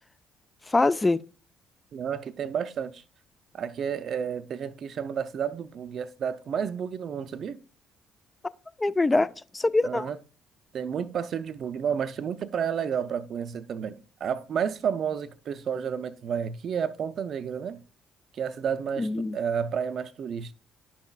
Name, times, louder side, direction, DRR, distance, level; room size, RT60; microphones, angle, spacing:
voice 1, 0.7-1.2 8.8-10.1 19.0-19.4, left 2 dB, 20° left, 0.4 m, -24 dB
voice 2, 1.9-3.0 3.5-7.6 9.8-10.2 10.7-17.8 18.3-20.5, right 7 dB, 55° right, 0.5 m, -31 dB
10.0 x 5.7 x 2.3 m
hypercardioid pair, 50°, 0 cm